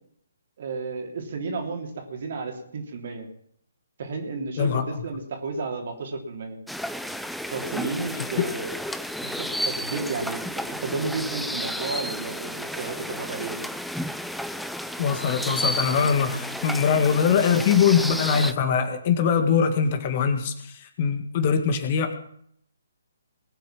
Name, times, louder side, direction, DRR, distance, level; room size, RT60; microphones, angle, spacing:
voice 1, 0.6-3.3 4.0-6.6 7.5-8.7 9.2-10.4 10.8-13.7, right 4 dB, 50° right, 2 dB, 3.2 m, -32 dB
sound 1, 6.7-18.5, equal, ahead, 0.5 m, -32 dB
voice 2, 15.0-20.5 21.0-22.1, left 6 dB, 35° left, 7 dB, 1.8 m, -22 dB
20.0 x 9.0 x 5.9 m, 0.68 s
figure-of-eight pair, 130°, 0 cm